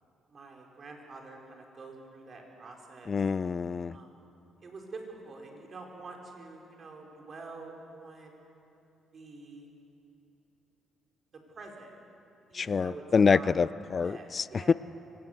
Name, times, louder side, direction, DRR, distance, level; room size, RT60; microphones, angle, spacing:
voice 1, 0.3-3.1 3.9-4.2 4.6-8.4 9.1-9.7 11.5-11.9 12.5-13.5 14.0-14.7, right 3 dB, 45° right, 1 dB, 4.7 m, -47 dB
voice 2, 3.1-4.0 12.5-14.7, left 5 dB, 40° left, 20 dB, 0.4 m, -26 dB
24.0 x 18.5 x 8.0 m, 2.9 s
cardioid pair, 90°, 0 cm